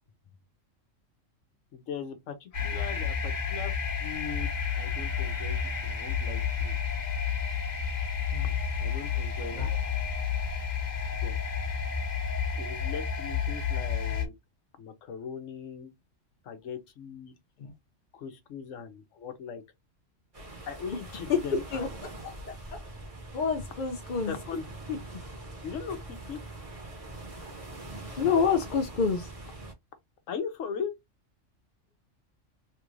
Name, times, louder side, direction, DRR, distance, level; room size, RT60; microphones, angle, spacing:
voice 1, 1.7-3.7 4.0-4.5 4.7-6.7 8.8-9.7 11.2-11.4 12.5-14.3 14.8-15.9 16.4-17.3 18.1-19.6 20.6-21.9 24.2-24.7 25.6-26.0 26.3-26.4 30.3-30.9, left 6 dB, 75° left, 1.2 m, -39 dB
sound 1, 2.5-14.3, left 6 dB, 35° left, 1.3 m, -31 dB
sound 2, 20.3-29.7, right 2 dB, 30° right, 1.1 m, -43 dB
voice 2, 21.3-22.8 23.3-24.4 24.9-25.0 28.2-29.3, left 6 dB, 55° left, 0.5 m, -29 dB
3.4 x 2.4 x 3.0 m
omnidirectional pair, 1.3 m